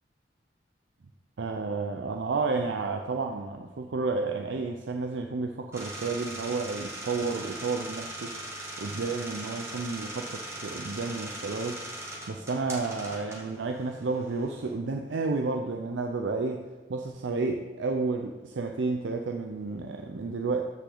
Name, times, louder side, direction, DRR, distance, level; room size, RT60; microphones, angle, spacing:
voice 1, 1.4-8.3 8.8-11.8 12.3-20.7, right 3 dB, 80° right, 4 dB, 0.5 m, -31 dB
sound 1, 5.7-14.7, right 1 dB, 15° right, 1.8 m, -40 dB
13.5 x 5.0 x 3.9 m, 1.3 s
head